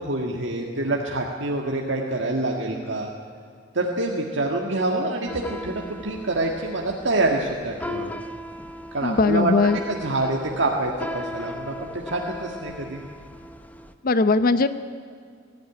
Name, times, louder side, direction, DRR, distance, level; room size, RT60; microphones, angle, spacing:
voice 1, 0.0-3.1 3.7-8.1 8.9-9.5 9.9-13.0, right 2 dB, 65° right, 0 dB, 1.7 m, -26 dB
sound 1, 5.3-13.9, left 1 dB, 10° left, 0.9 m, -38 dB
voice 2, 9.0-9.8 14.0-14.7, left 3 dB, 50° left, 12 dB, 0.7 m, -19 dB
20.0 x 14.0 x 9.8 m, 2.2 s
head